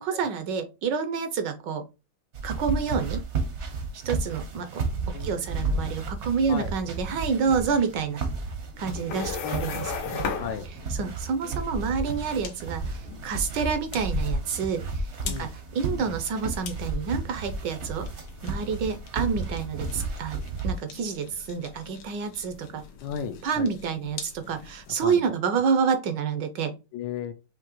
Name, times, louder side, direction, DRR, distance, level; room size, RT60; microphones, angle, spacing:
voice 1, 0.0-1.8 2.4-3.2 3.9-8.2 8.8-10.2 10.9-18.1 18.4-20.4 20.6-22.8 23.4-26.7, right 6 dB, 75° right, 1.2 m, -28 dB
sound 1, 2.3-20.7, right 3 dB, 55° right, 0.8 m, -32 dB
voice 2, 5.1-5.6 6.5-6.7 9.1-10.7 15.3-15.5 23.0-23.7 25.0-25.3 26.9-27.3, left 8 dB, 75° left, 1.1 m, -36 dB
sound 2, 8.7-25.0, left 6 dB, 90° left, 1.7 m, -40 dB
5.9 x 2.7 x 2.9 m
omnidirectional pair, 2.2 m